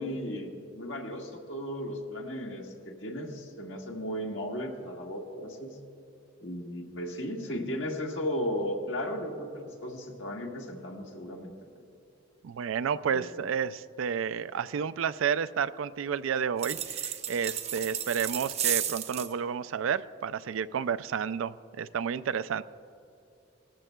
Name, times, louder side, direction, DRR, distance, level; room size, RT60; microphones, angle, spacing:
voice 1, 0.0-5.8 6.4-11.8 13.1-13.4, equal, 70° left, 0 dB, 1.6 m, -35 dB
voice 2, 12.4-22.6, right 7 dB, 85° right, 13 dB, 0.4 m, -31 dB
sound 1, 16.6-19.3, right 9 dB, 35° right, 0.5 m, -33 dB
18.5 x 13.5 x 2.3 m, 2.7 s
head